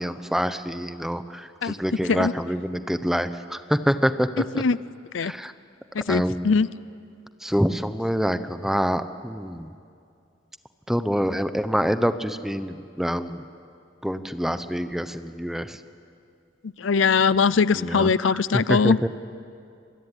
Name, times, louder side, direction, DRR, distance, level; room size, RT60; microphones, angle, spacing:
voice 1, 0.0-4.6 5.2-5.5 6.1-6.5 7.4-9.7 10.9-13.4 14.0-15.8 17.7-19.1, equal, ahead, 11 dB, 0.9 m, -26 dB
voice 2, 2.0-2.3 4.6-4.8 5.1-5.3 5.9-6.7 16.6-19.0, left 5 dB, 85° left, 18 dB, 0.6 m, -21 dB
26.0 x 23.0 x 10.0 m, 2.4 s
head